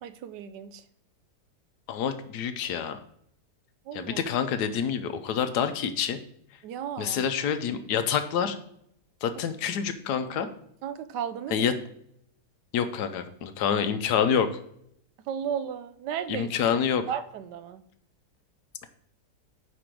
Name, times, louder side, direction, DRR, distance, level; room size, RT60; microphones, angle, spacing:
voice 1, 0.0-0.8 3.9-4.2 6.6-7.2 10.8-11.7 15.3-16.8 17.1-17.8, right 8 dB, 80° right, 12 dB, 1.2 m, -34 dB
voice 2, 1.9-3.0 3.9-6.2 7.0-8.6 9.2-10.5 11.5-11.7 12.7-14.5 16.3-17.0, left 7 dB, 75° left, 9 dB, 1.2 m, -27 dB
5.0 x 4.9 x 5.9 m, 0.71 s
omnidirectional pair, 1.8 m